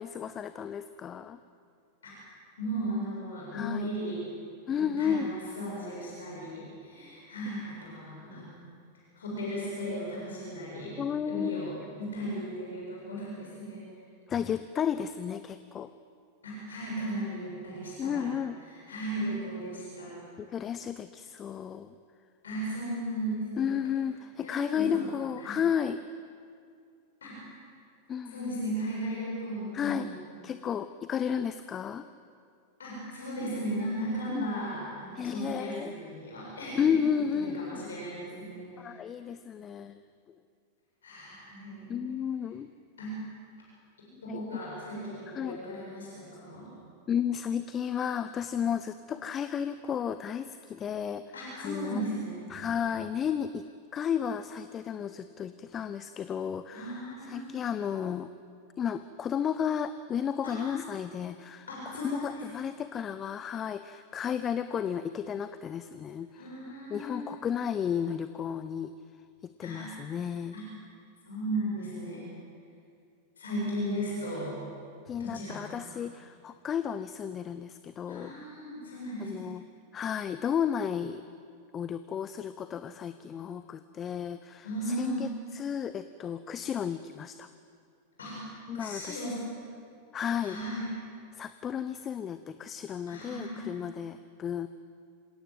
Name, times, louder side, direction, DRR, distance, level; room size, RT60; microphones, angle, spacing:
voice 1, 0.0-1.4 3.5-3.9 4.7-5.3 11.0-11.7 14.3-15.9 18.0-18.6 20.4-22.0 23.6-26.0 28.1-28.5 29.7-30.1 30.4-32.1 34.3-34.5 35.2-35.9 36.7-37.8 38.8-40.0 41.9-42.7 44.1-44.4 45.3-45.6 47.1-51.2 51.6-52.0 52.5-53.7 53.9-58.3 58.8-68.9 69.4-70.6 75.1-78.3 79.2-79.6 79.9-81.2 81.7-87.5 88.7-89.4 90.1-90.6 91.3-94.7, left 8 dB, 25° left, 12 dB, 0.7 m, -33 dB
voice 2, 2.6-4.2 4.7-8.5 9.2-10.9 11.3-13.9 16.4-18.3 18.6-20.2 22.4-23.8 24.4-25.1 25.4-25.5 27.2-27.5 28.3-30.1 32.8-36.8 37.3-39.0 41.0-42.0 43.0-43.2 44.2-46.7 51.3-52.5 56.7-57.4 60.4-60.8 61.7-62.4 66.3-67.4 69.6-69.9 70.5-70.6 71.3-72.3 73.4-74.6 75.2-75.9 78.1-79.5 84.6-85.3 88.2-88.4 88.7-89.4 90.4-90.8 93.1-93.6, right 1 dB, 70° left, -5 dB, 7.3 m, -36 dB
27.0 x 17.5 x 8.0 m, 2.3 s
figure-of-eight pair, 90°, 0 cm